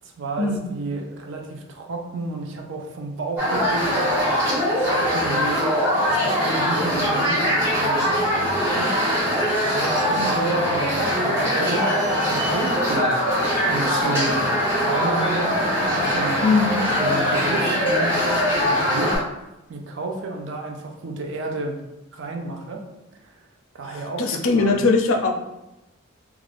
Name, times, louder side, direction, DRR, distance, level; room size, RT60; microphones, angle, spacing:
voice 1, 0.0-4.2 4.8-5.6 6.1-13.3 13.7-14.4 14.8-16.4 16.9-19.2 19.7-21.8 22.1-22.8 23.2-23.5 23.7-24.9, right 2 dB, 60° right, 2 dB, 0.5 m, -32 dB
sound 1, 3.4-19.2, equal, 10° right, 1.2 m, -22 dB
voice 2, 16.4-16.8 23.9-25.3, left 3 dB, 70° left, 4 dB, 0.4 m, -21 dB
2.5 x 2.3 x 3.2 m, 0.95 s
head